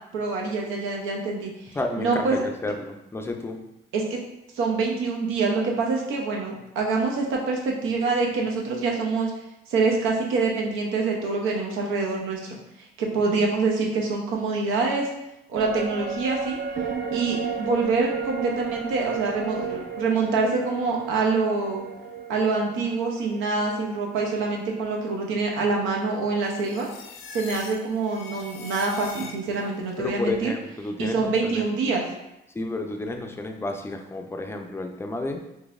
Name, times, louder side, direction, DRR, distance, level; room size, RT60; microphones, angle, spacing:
voice 1, 0.1-2.4 3.9-4.2 4.5-9.3 9.7-12.6 13.0-15.1 15.5-16.6 17.1-21.9 22.3-26.9 27.3-30.5 31.0-32.0, right 4 dB, 90° right, 0 dB, 0.7 m, -25 dB
voice 2, 1.7-3.6 30.0-31.7 32.5-35.4, left 2 dB, 10° left, 4 dB, 0.4 m, -31 dB
sound 1, 15.6-25.1 25.4-25.5, right 6 dB, 50° right, 0.4 m, -34 dB
sound 2, 26.4-29.8, left 5 dB, 80° left, 0.4 m, -41 dB
3.9 x 2.7 x 2.4 m, 0.89 s
cardioid pair, 90°, 20 cm